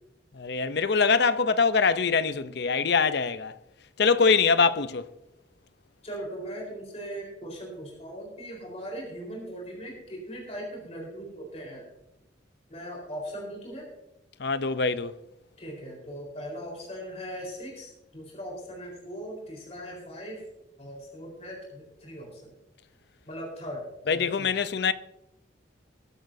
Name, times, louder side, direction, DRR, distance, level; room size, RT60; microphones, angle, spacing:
voice 1, 0.3-3.5 4.0-5.1 14.4-15.1 24.1-24.9, left 5 dB, 60° left, 0.6 m, -23 dB
voice 2, 6.0-11.8 12.7-13.9 15.6-20.4 20.8-22.5 23.3-24.5, equal, 35° left, 4.2 m, -39 dB
21.5 x 10.5 x 2.7 m
head